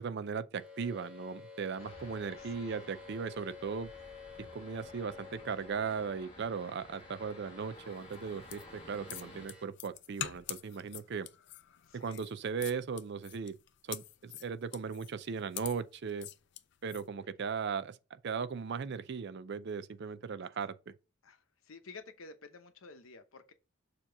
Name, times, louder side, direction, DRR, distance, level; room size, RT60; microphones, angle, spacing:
voice 1, 0.0-3.9 4.4-11.3 11.9-13.5 13.8-16.3 16.8-20.9, right 5 dB, 55° right, 0.4 m, -38 dB
sound 1, 0.6-9.7, left 4 dB, 5° right, 1.5 m, -52 dB
sound 2, 1.8-9.5, left 2 dB, 30° left, 1.0 m, -54 dB
voice 2, 2.3-2.9 11.9-12.2 21.2-23.5, left 4 dB, 75° left, 0.8 m, -52 dB
sound 3, 8.1-17.1, left 12 dB, 55° left, 0.4 m, -45 dB
6.8 x 2.9 x 5.2 m
head